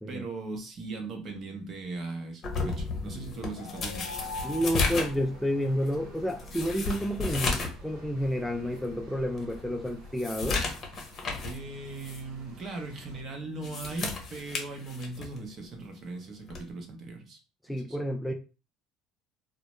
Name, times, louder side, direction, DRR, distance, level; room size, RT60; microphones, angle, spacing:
voice 1, 0.1-4.0 11.4-17.4 17.7-18.0, right 3 dB, 45° right, 0.7 m, -39 dB
sound 1, 2.4-7.8 8.2-8.3 8.8-8.9 9.4-11.6 12.0-12.2 13.4-15.4 16.5-16.7, left 4 dB, 45° left, 0.7 m, -33 dB
sound 2, 3.2-6.1, left 3 dB, 80° left, 0.4 m, -43 dB
sound 3, 4.2-13.2, left 1 dB, 75° right, 0.7 m, -50 dB
voice 2, 4.4-10.6 17.7-18.3, equal, 5° left, 0.4 m, -30 dB
2.1 x 2.0 x 2.9 m
hypercardioid pair, 75°, 0 cm